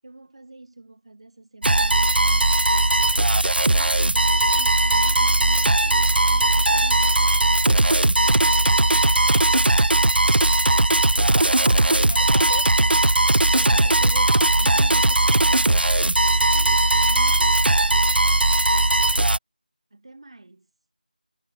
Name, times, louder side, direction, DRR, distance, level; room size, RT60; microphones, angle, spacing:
voice 1, 0.0-3.3 3.7-11.0 11.5-12.7 16.4-18.3 19.9-20.7, right 2 dB, 35° right, 7.7 m, -46 dB
sound 1, 1.6-19.4, right 2 dB, 80° right, 0.6 m, -18 dB
voice 2, 11.7-12.9 13.5-15.8, left 5 dB, 15° left, 4.0 m, -40 dB
figure-of-eight pair, 175°, 5 cm